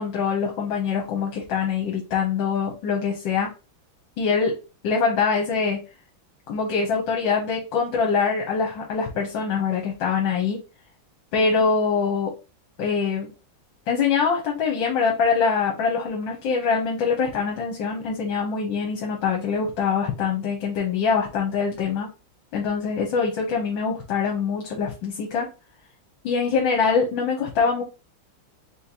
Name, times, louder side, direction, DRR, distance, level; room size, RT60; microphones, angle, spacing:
voice 1, 0.0-3.5 4.2-4.5 4.8-5.8 6.5-10.6 11.3-12.3 12.8-13.3 13.9-22.1 22.5-25.5 26.2-27.8, left 5 dB, 70° left, 0 dB, 1.7 m, -24 dB
4.4 x 3.6 x 2.9 m, 0.30 s
omnidirectional pair, 2.2 m